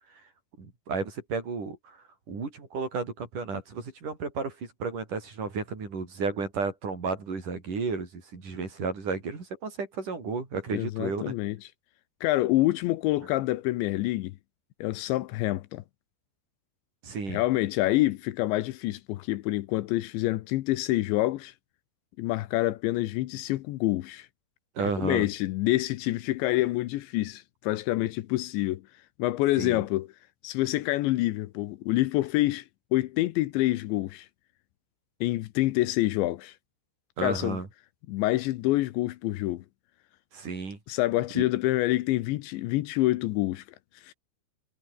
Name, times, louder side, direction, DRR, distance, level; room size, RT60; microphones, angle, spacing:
voice 1, 0.6-11.4 17.0-17.4 24.8-25.3 29.6-29.8 37.2-37.7 40.3-40.8 41.3-41.5, right 4 dB, 45° right, 6.5 m, -33 dB
voice 2, 10.7-11.6 12.2-14.4 14.8-15.8 17.3-21.5 22.2-24.3 25.0-28.8 29.2-30.1 30.4-32.6 32.9-34.3 35.2-36.5 37.2-37.6 38.1-39.6 40.9-43.6 44.0-44.1, left 17 dB, 80° left, 3.1 m, -27 dB
omnidirectional pair, 5.4 m